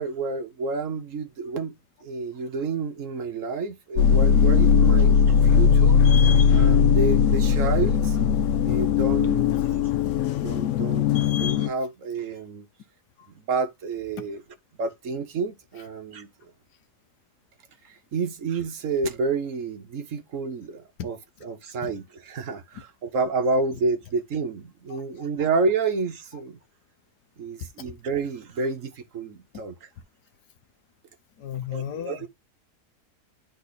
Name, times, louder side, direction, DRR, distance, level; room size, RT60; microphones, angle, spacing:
voice 1, 0.0-1.7 2.0-5.1 5.4-8.2 8.6-9.5 10.4-11.1 11.4-12.7 13.3-14.4 14.8-16.3 17.8-26.6 27.4-29.9 31.7-32.3, right 4 dB, 55° right, 1.3 m, -29 dB
sound 1, 4.0-11.7, left 7 dB, 65° left, 0.8 m, -19 dB
voice 2, 31.4-32.3, left 10 dB, 90° left, 1.5 m, -33 dB
10.0 x 3.9 x 4.0 m
omnidirectional pair, 1.7 m